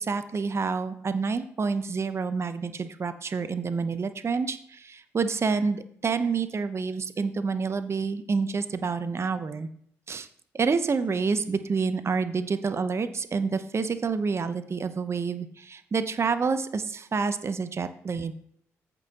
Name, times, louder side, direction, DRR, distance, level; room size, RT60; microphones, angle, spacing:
voice 1, 0.0-9.7 10.1-10.3 10.5-18.3, right 5 dB, 40° right, 11 dB, 0.7 m, -28 dB
14.0 x 5.3 x 2.9 m, 0.63 s
hypercardioid pair, 45°, 7 cm